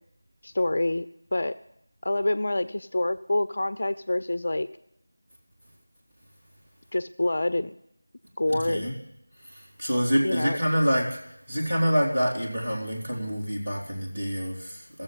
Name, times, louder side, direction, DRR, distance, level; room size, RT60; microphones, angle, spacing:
voice 1, 0.4-1.1 1.3-1.6 2.0-4.7 6.9-7.7 8.4-8.9 10.2-10.6, left 1 dB, 40° left, 13 dB, 0.4 m, -26 dB
voice 2, 8.5-9.0 9.4-11.2 11.5-15.0, equal, 25° right, -5 dB, 3.2 m, -27 dB
14.5 x 7.6 x 8.4 m, 0.81 s
figure-of-eight pair, 170°, 0 cm